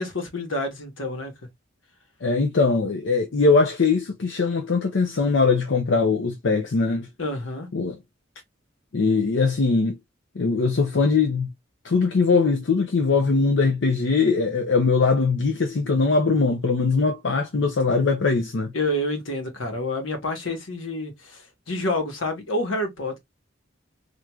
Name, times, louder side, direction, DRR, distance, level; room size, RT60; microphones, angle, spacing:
voice 1, 0.0-1.3 7.2-7.7 18.7-23.2, left 1 dB, 80° left, 1.2 m, -28 dB
voice 2, 2.2-7.1 7.7-8.0 8.9-10.0 10.4-11.5 11.8-18.7, left 4 dB, 65° left, 0.6 m, -21 dB
4.6 x 2.5 x 2.3 m
head